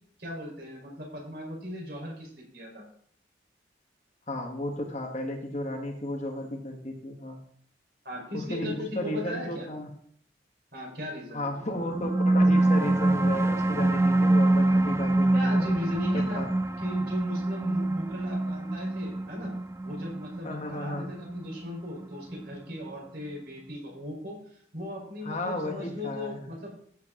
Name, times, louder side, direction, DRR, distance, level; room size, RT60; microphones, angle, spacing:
voice 1, 0.2-2.8 8.0-9.7 10.7-11.4 15.3-16.5 16.8-19.5 19.8-26.7, left 1 dB, 55° right, -1 dB, 4.5 m, -38 dB
voice 2, 4.3-7.4 8.3-9.9 11.3-15.7 16.1-16.5 20.4-21.1 25.2-26.6, left 1 dB, 40° left, 3 dB, 1.5 m, -34 dB
sound 1, 11.8-22.7, right 2 dB, 15° right, 0.4 m, -25 dB
15.0 x 7.9 x 3.8 m, 0.62 s
head